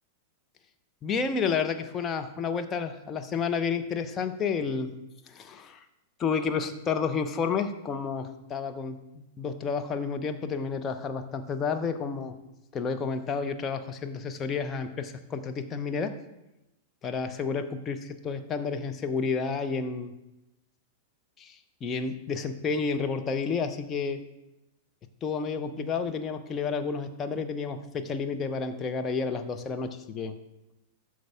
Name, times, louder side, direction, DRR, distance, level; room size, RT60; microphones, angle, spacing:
voice 1, 1.0-4.9 5.3-5.8 6.2-12.3 12.7-16.1 17.0-20.1 21.4-24.2 25.2-30.3, left 5 dB, 25° left, 6 dB, 0.9 m, -30 dB
13.0 x 6.2 x 3.6 m, 0.93 s
figure-of-eight pair, 95°, 0 cm